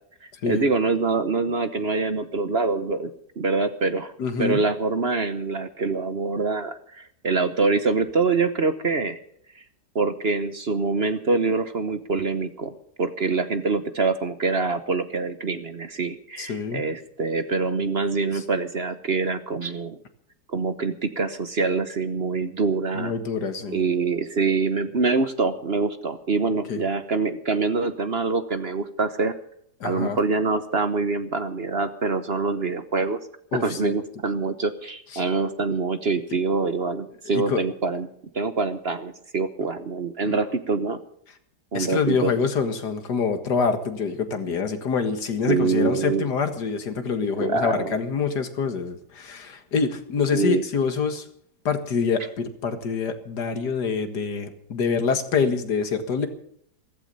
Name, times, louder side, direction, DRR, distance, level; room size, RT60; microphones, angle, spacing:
voice 1, 0.5-3.1 3.4-4.1 4.4-9.2 9.9-20.0 20.5-23.1 23.7-29.3 29.8-33.2 33.5-38.1 38.3-41.0 41.7-42.3 45.5-46.3 47.4-47.9 50.3-50.6, right 4 dB, 45° right, 11 dB, 1.1 m, -25 dB
voice 2, 4.2-4.6 16.4-16.8 18.3-18.4 22.9-23.8 26.7-26.8 29.8-30.2 33.5-34.0 35.1-35.2 37.3-37.6 40.2-40.4 41.7-51.3 51.7-56.3, left 5 dB, 80° left, 9 dB, 2.3 m, -26 dB
15.0 x 15.0 x 5.4 m, 0.66 s
omnidirectional pair, 1.7 m